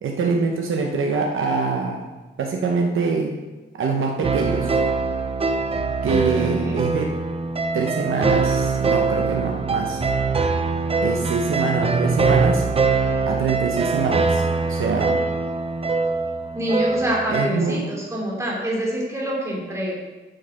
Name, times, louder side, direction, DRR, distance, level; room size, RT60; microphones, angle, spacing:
voice 1, 0.0-2.1 2.4-3.3 3.7-4.7 6.0-7.2 7.7-10.0 11.0-12.6 13.3-15.2 17.3-17.8, right 4 dB, 90° right, 2 dB, 0.8 m, -24 dB
sound 1, 4.2-17.5, right 4 dB, 30° right, 0.6 m, -22 dB
voice 2, 6.0-6.8 16.5-19.9, equal, 15° right, -4 dB, 2.7 m, -26 dB
7.7 x 6.5 x 5.7 m, 1.2 s
wide cardioid pair, 130°, 20 cm